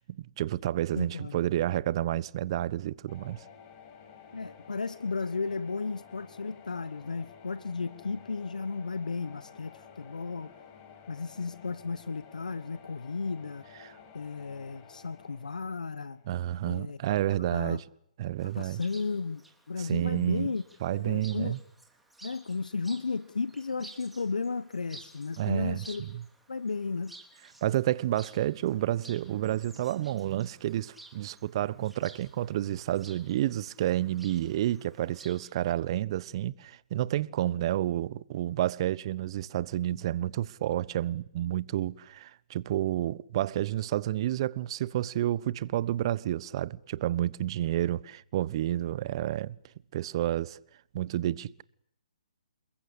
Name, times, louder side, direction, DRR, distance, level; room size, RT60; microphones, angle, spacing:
voice 1, 0.0-3.4 13.8-14.0 16.3-17.8 18.2-18.8 19.8-20.5 20.8-21.6 25.4-26.2 27.6-49.6 49.9-50.6 50.9-51.6, right 13 dB, 40° right, 1.1 m, -30 dB
voice 2, 0.9-1.4 4.3-10.5 11.1-13.6 14.1-16.2 16.7-17.0 17.4-17.8 18.4-19.4 19.7-20.6 20.9-21.6 22.2-26.0 26.5-27.1, left 4 dB, 80° left, 1.2 m, -34 dB
sound 1, 3.1-16.9, left 7 dB, 30° left, 5.4 m, -53 dB
Chirp tweet, 18.4-35.5, right 2 dB, ahead, 3.5 m, -54 dB
29.0 x 22.0 x 8.5 m
hypercardioid pair, 140°, 4 cm